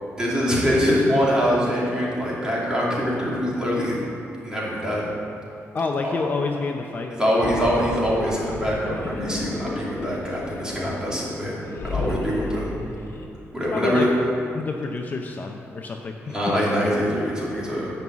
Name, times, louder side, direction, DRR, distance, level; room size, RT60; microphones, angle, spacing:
voice 1, 0.2-4.0 4.4-5.1 6.0-6.3 7.2-12.7 13.5-14.1 16.3-17.9, equal, 15° right, -6 dB, 2.8 m, -24 dB
voice 2, 5.7-7.3 12.0-12.1 13.7-14.1 14.5-16.5, left 4 dB, 35° left, 2 dB, 0.7 m, -28 dB
sound 1, 7.2-13.3, left 3 dB, 55° left, 1.4 m, -34 dB
11.0 x 5.6 x 8.0 m, 2.7 s
cardioid pair, 135°, 5 cm